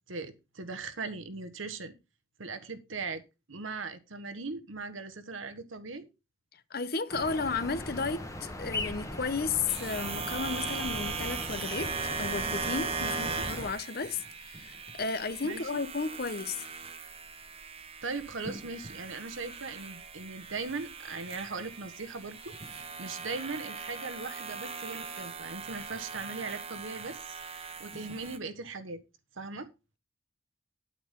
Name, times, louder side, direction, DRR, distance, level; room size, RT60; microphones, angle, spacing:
voice 1, 0.1-2.0 2.4-3.2 3.5-6.1 13.3-13.5 15.4-15.8 18.0-29.0 29.3-29.7, right 4 dB, 85° right, 1.4 m, -39 dB
voice 2, 6.7-16.6, left 4 dB, 50° left, 0.9 m, -33 dB
sound 1, 7.1-13.7, left 2 dB, 15° left, 1.3 m, -39 dB
sound 2, 9.7-28.4, right 5 dB, 30° right, 1.2 m, -39 dB
10.0 x 9.1 x 3.8 m
head